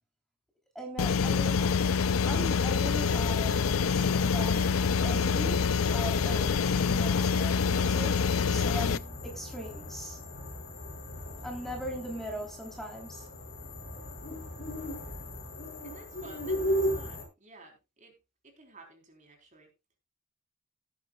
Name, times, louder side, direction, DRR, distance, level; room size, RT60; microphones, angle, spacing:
voice 1, 0.8-1.8 2.3-4.7 5.0-10.2 11.4-13.3, equal, ahead, 3.5 m, -40 dB
sound 1, 1.0-9.0, left 5 dB, 85° left, 0.5 m, -26 dB
sound 2, 2.9-17.2, equal, 50° left, 5.4 m, -38 dB
voice 2, 15.8-18.2 18.4-19.7, right 2 dB, 40° right, 3.9 m, -54 dB
17.5 x 9.6 x 2.4 m
head